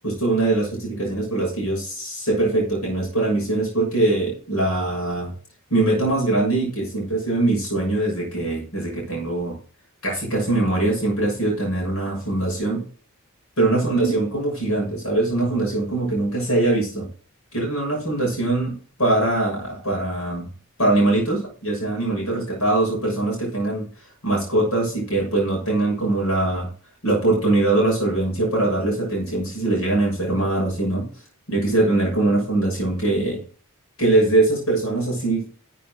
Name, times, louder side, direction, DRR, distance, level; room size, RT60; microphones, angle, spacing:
voice 1, 0.0-5.3 5.7-9.5 10.0-12.8 13.6-17.1 17.5-18.7 19.0-20.5 20.8-23.9 24.2-26.7 27.0-31.1 31.5-33.4 34.0-35.5, right 2 dB, 85° left, -1 dB, 6.9 m, -22 dB
13.0 x 8.4 x 3.9 m, 0.40 s
head